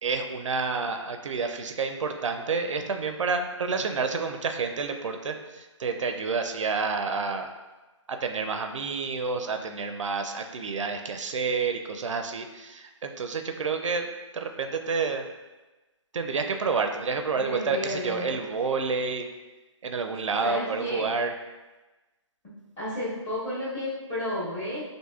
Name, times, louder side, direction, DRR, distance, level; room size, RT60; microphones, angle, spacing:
voice 1, 0.0-7.5 8.1-14.1 14.3-15.2 16.1-19.3 19.8-21.3, right 4 dB, 75° right, 5 dB, 0.4 m, -29 dB
voice 2, 17.4-18.4 20.4-21.1 22.8-24.8, left 1 dB, 15° left, -9 dB, 1.0 m, -32 dB
4.3 x 2.7 x 2.3 m, 1.1 s
hypercardioid pair, 155°, 16 cm